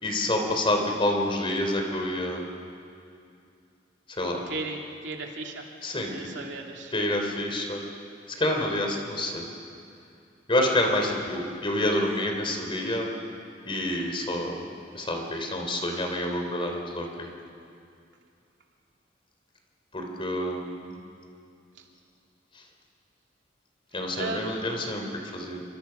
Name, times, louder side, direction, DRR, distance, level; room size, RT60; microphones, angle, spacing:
voice 1, 0.0-2.5 4.1-4.4 5.8-6.3 6.9-7.8 8.4-9.5 10.5-13.1 13.6-17.3 19.9-21.0 22.5-22.6 23.9-25.6, left 1 dB, 30° left, 2 dB, 3.4 m, -28 dB
voice 2, 4.5-5.6 6.1-6.9 24.1-24.6, right 3 dB, 70° right, 1 dB, 2.9 m, -35 dB
27.5 x 25.5 x 5.9 m, 2.5 s
head